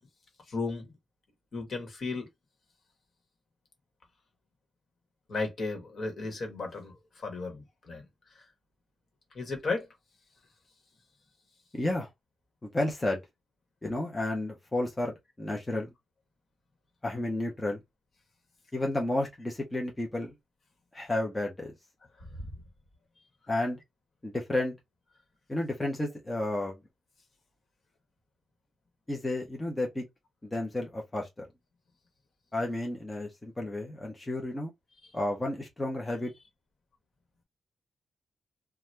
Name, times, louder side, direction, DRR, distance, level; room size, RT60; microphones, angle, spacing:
voice 1, 0.5-0.9 1.5-2.3 5.3-6.9 7.2-8.0 9.3-9.9 22.4-22.5, left 3 dB, 55° left, 1.3 m, -34 dB
voice 2, 11.7-12.1 12.6-13.2 13.8-15.9 17.0-17.8 18.7-20.3 20.9-21.7 23.5-23.8 24.2-24.7 25.5-26.8 29.1-30.0 30.4-31.3 32.5-34.7 35.1-36.3, left 1 dB, 15° left, 0.8 m, -31 dB
2.7 x 2.3 x 3.2 m
wide cardioid pair, 145°, 0 cm